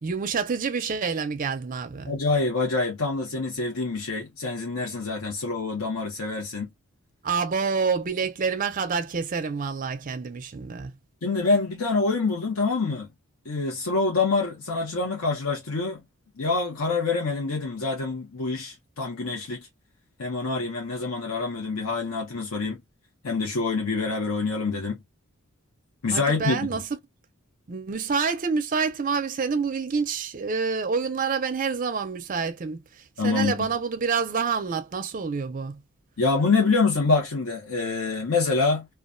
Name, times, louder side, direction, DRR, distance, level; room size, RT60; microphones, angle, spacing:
voice 1, 0.0-2.1 7.2-10.9 26.1-26.9 27.7-35.8, right 5 dB, 40° right, 0.5 m, -27 dB
voice 2, 2.1-6.7 11.2-13.1 13.4-16.0 16.4-19.7 20.2-22.8 23.2-25.0 26.0-26.6 33.2-33.5 36.2-38.9, left 3 dB, 85° left, 0.8 m, -26 dB
2.3 x 2.2 x 2.4 m
head